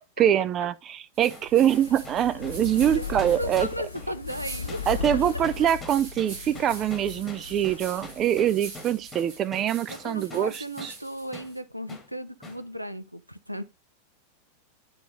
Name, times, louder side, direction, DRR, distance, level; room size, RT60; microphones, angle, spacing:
voice 1, 0.2-3.7 4.9-10.9, right 10 dB, 30° right, 0.4 m, -24 dB
sound 1, 1.1-11.6, right 4 dB, 50° right, 4.4 m, -45 dB
sound 2, 1.3-10.5 10.8-11.0 11.3-11.5 11.9-12.1 12.4-12.6, left 1 dB, 10° left, 1.4 m, -44 dB
Fire, 1.4-8.7 9.0-9.1, left 6 dB, 75° left, 0.5 m, -38 dB
voice 2, 3.4-4.8 9.9-13.6, equal, 90° right, 0.5 m, -36 dB
9.0 x 3.4 x 3.8 m
figure-of-eight pair, 90°, 0 cm